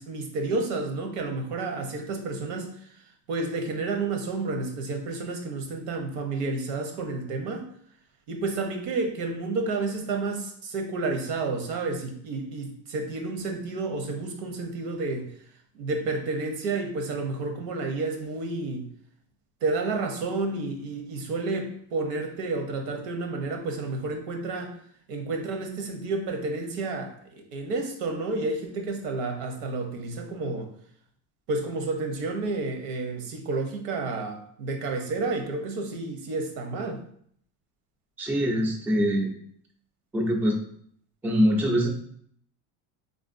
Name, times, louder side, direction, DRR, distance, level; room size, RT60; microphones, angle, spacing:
voice 1, 0.0-3.0 3.3-7.7 8.3-15.3 15.7-18.9 19.6-24.7 25.1-30.7 31.5-37.0, right 3 dB, 85° right, 4 dB, 0.8 m, -30 dB
voice 2, 38.2-39.3 40.1-40.6 41.2-41.9, equal, 5° right, 0 dB, 0.3 m, -23 dB
3.4 x 2.5 x 2.5 m, 0.63 s
supercardioid pair, 110°, 45 cm